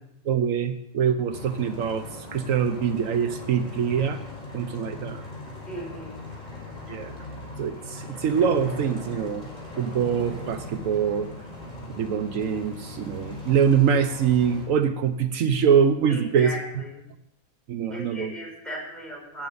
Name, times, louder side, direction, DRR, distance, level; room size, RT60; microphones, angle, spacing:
voice 1, 0.3-4.2 4.5-5.2 6.9-7.1 7.6-9.5 9.8-11.3 12.0-16.8 17.7-18.3, right 7 dB, 80° right, 9 dB, 1.1 m, -24 dB
sound 1, 1.3-14.7, left 1 dB, 30° left, 4.8 m, -39 dB
voice 2, 5.7-6.2 16.1-16.9 17.9-19.5, equal, ahead, -3 dB, 4.9 m, -37 dB
13.5 x 9.2 x 5.4 m, 0.80 s
omnidirectional pair, 1.4 m